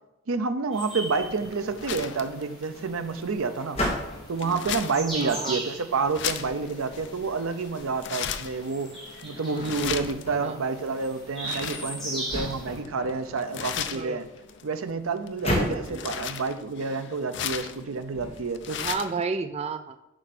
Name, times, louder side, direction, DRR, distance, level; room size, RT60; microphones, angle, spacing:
voice 1, 0.3-3.8 4.3-8.9 9.2-14.3 14.6-18.9, right 4 dB, 90° right, 10 dB, 0.7 m, -29 dB
sound 1, 0.7-12.8, right 1 dB, ahead, 2.7 m, -40 dB
sound 2, 1.1-19.2, left 8 dB, 60° left, 0.5 m, -38 dB
sound 3, 2.7-18.8, equal, 30° left, 2.0 m, -37 dB
voice 2, 5.2-5.6 9.5-9.9 10.4-10.7 13.9-14.2 15.6-16.3 18.7-20.0, right 5 dB, 30° right, 8 dB, 0.3 m, -33 dB
7.9 x 5.5 x 4.2 m, 0.94 s
head